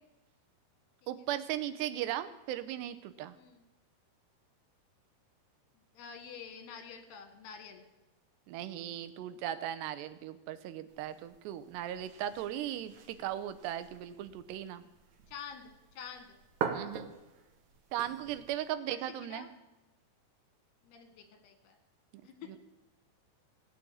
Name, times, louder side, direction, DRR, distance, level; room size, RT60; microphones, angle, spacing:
voice 1, 1.1-3.4 8.5-14.8 16.7-17.1 17.9-19.5 22.1-22.2 22.5-22.6, right 12 dB, 85° right, 12 dB, 3.0 m, -37 dB
voice 2, 5.9-7.9 15.3-16.4 18.9-19.5 20.8-21.8 22.2-22.6, left 7 dB, 75° left, 7 dB, 3.7 m, -48 dB
sound 1, 10.9-18.7, right 7 dB, 60° right, 2.1 m, -44 dB
17.0 x 7.6 x 8.6 m, 1.1 s
omnidirectional pair, 4.8 m